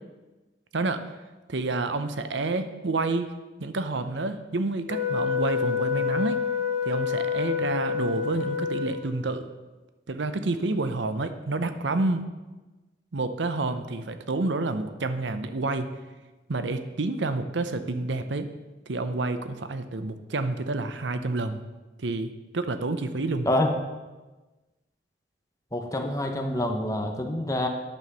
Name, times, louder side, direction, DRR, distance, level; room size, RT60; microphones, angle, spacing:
voice 1, 1.5-3.3 3.6-6.4 6.9-9.5 10.1-12.2 13.1-15.9 16.5-18.5 18.9-21.6 22.0-23.5, right 2 dB, 75° right, 10 dB, 0.7 m, -29 dB
Wind instrument woodwind instrument, 4.9-9.3, left 7 dB, 60° left, 2.8 m, -28 dB
voice 2, 25.7-27.7, left 1 dB, 15° left, 3 dB, 1.0 m, -26 dB
10.5 x 6.0 x 6.9 m, 1.2 s
head